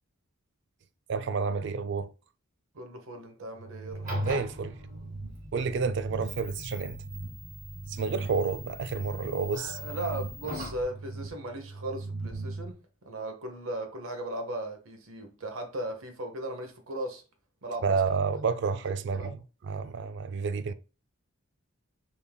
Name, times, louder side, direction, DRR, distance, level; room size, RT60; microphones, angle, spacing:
voice 1, 1.1-2.1 4.3-4.8 5.5-7.0 7.9-9.8 17.8-19.4 19.6-20.7, right 5 dB, 55° right, 0.3 m, -30 dB
voice 2, 2.7-4.4 9.5-12.8 13.0-17.2 17.6-18.0 19.1-19.3, right 1 dB, 70° right, 0.9 m, -37 dB
sound 1, 3.6-12.7, right 3 dB, 90° right, 1.3 m, -40 dB
sound 2, 3.9-10.8, left 1 dB, 35° right, 1.6 m, -41 dB
5.2 x 3.5 x 2.3 m
head